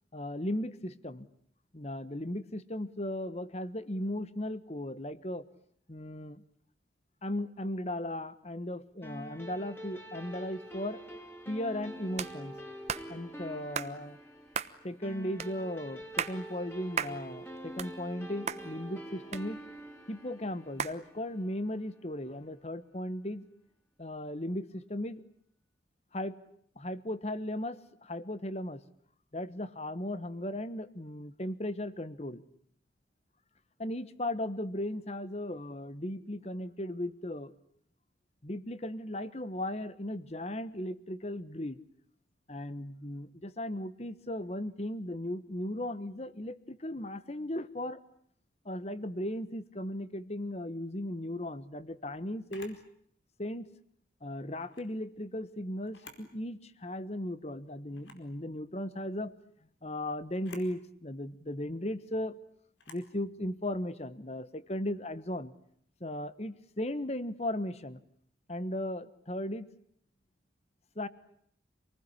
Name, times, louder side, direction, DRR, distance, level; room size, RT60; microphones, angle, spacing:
voice 1, 0.1-1.3 1.7-5.4 5.9-6.4 7.2-11.0 11.5-12.6 13.1-14.2 14.8-19.6 20.1-23.4 24.0-25.2 26.1-26.4 26.8-28.8 29.3-32.4 33.8-37.5 38.4-41.8 42.5-48.0 48.6-52.8 53.4-53.7 54.2-59.3 59.8-62.4 62.9-65.5 66.0-68.0 68.5-69.7 70.9-71.1, left 1 dB, 35° left, 15 dB, 1.3 m, -37 dB
sound 1, 9.0-21.8, equal, 10° left, 3.3 m, -46 dB
sound 2, 12.2-12.3 12.9-13.1 13.7-13.9 14.5-14.7 15.4-15.5 16.0-16.4 17.0-17.2 17.6-18.2 18.5-18.6 19.3-19.9 20.8-21.0, right 6 dB, 35° right, 1.1 m, -34 dB
Camera, 52.5-52.8 54.6-54.9 55.8-56.3 56.8-56.9 57.9-58.3 60.3-60.7 62.8-63.1, left 4 dB, 85° left, 4.6 m, -52 dB
27.5 x 19.5 x 9.9 m, 0.66 s
head